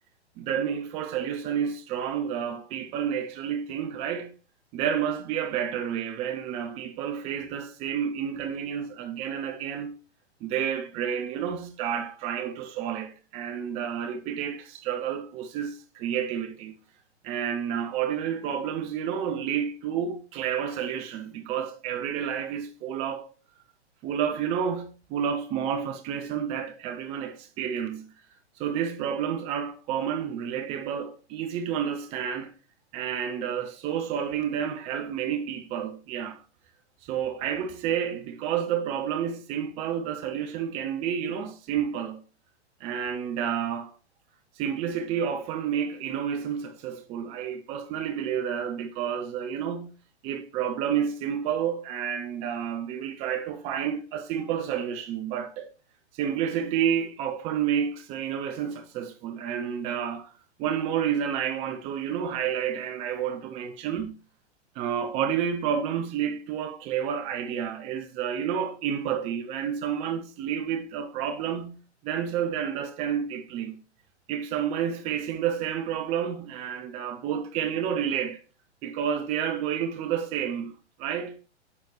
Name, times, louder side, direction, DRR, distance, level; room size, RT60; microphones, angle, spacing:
voice 1, 0.4-4.3 4.7-9.9 10.4-16.8 17.2-23.3 24.0-28.1 28.6-32.5 32.9-36.4 37.0-42.2 42.8-43.9 44.6-49.9 50.2-55.7 56.1-60.3 60.6-64.2 64.8-71.8 72.0-73.8 74.3-78.4 78.8-80.7 81.0-81.3, right 8 dB, 20° right, 0.6 m, -30 dB
9.7 x 6.0 x 3.0 m
figure-of-eight pair, 110°, 34 cm